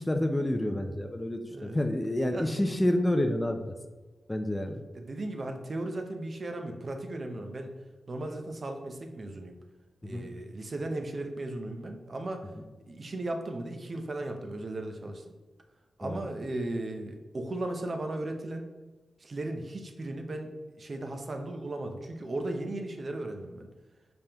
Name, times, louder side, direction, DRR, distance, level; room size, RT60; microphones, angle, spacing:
voice 1, 0.0-3.8 4.3-4.8 10.0-10.3 16.0-16.2, left 1 dB, 15° left, 5 dB, 0.4 m, -29 dB
voice 2, 2.3-2.7 4.9-7.7 8.1-9.6 10.0-12.4 12.9-15.2 16.0-18.7 19.2-20.5 20.8-23.7, right 2 dB, 45° right, 4 dB, 0.5 m, -36 dB
5.2 x 3.4 x 2.8 m, 1.2 s
wide cardioid pair, 100°, 0 cm